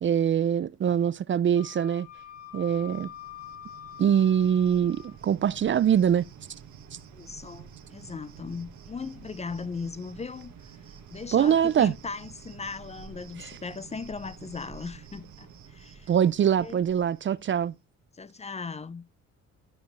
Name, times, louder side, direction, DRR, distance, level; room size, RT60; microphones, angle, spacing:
voice 1, 0.0-2.1 2.5-3.1 4.0-6.3 11.3-11.9 13.4-13.5 16.1-17.7, right 9 dB, 40° right, 0.5 m, -23 dB
Wind instrument woodwind instrument, 1.6-5.2, left 11 dB, 50° left, 6.1 m, -45 dB
Cricket, 2.0-17.7, right 7 dB, 75° right, 1.6 m, -49 dB
voice 2, 7.1-10.5 11.1-16.1 16.4-16.8 18.1-19.0, left 4 dB, 20° left, 0.6 m, -38 dB
13.0 x 5.1 x 3.1 m
cardioid pair, 90°, 30 cm